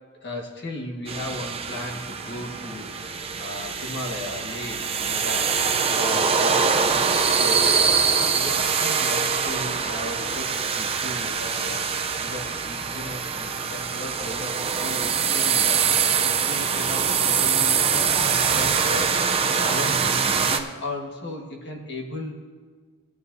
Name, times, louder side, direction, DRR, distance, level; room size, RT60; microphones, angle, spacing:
voice 1, 0.2-6.6 6.9-10.5 10.7-11.8 12.2-14.5 14.8-19.2 19.5-22.4, left 1 dB, 50° left, 0 dB, 1.6 m, -36 dB
sound 1, 1.1-20.6, right 6 dB, 25° right, 0.5 m, -24 dB
17.5 x 9.5 x 2.7 m, 1.5 s
head